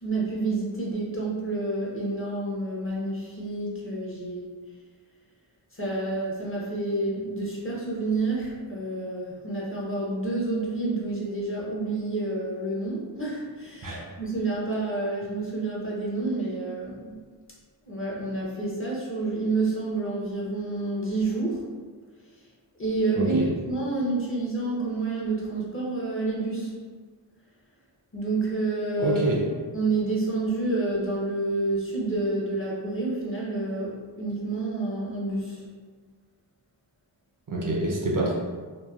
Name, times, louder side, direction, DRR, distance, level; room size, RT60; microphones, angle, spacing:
voice 1, 0.0-4.6 5.7-17.2 17.8-21.7 22.3-22.4 22.8-23.4 23.7-26.8 28.1-29.2 29.7-35.7, right 2 dB, 30° left, -5 dB, 0.7 m, -29 dB
voice 2, 29.0-29.4 37.5-38.3, right 2 dB, 45° right, -3 dB, 0.5 m, -26 dB
2.8 x 2.1 x 2.3 m, 1.5 s
wide cardioid pair, 60°, 46 cm